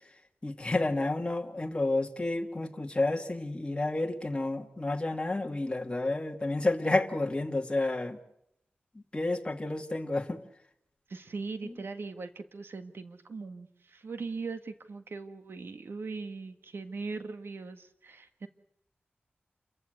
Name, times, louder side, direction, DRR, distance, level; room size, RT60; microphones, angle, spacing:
voice 1, 0.4-8.2 8.9-10.4 11.6-11.7, left 2 dB, 25° left, 3 dB, 2.4 m, -30 dB
voice 2, 11.1-18.5, right 4 dB, 80° right, 9 dB, 1.7 m, -40 dB
28.5 x 15.0 x 9.4 m, 0.77 s
wide cardioid pair, 85°, 4 cm